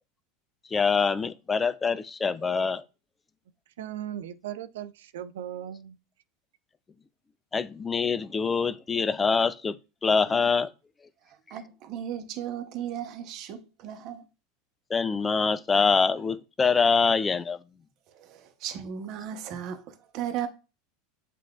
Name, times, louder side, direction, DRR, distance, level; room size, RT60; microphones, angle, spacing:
voice 1, 0.7-2.8 7.5-10.7 14.9-17.6, left 5 dB, 20° left, 0.4 m, -25 dB
voice 2, 3.8-6.0, right 10 dB, 80° right, 0.4 m, -37 dB
voice 3, 11.5-14.2 18.1-20.5, right 9 dB, 50° right, 0.9 m, -36 dB
7.4 x 2.5 x 2.4 m
hypercardioid pair, 100°, 0 cm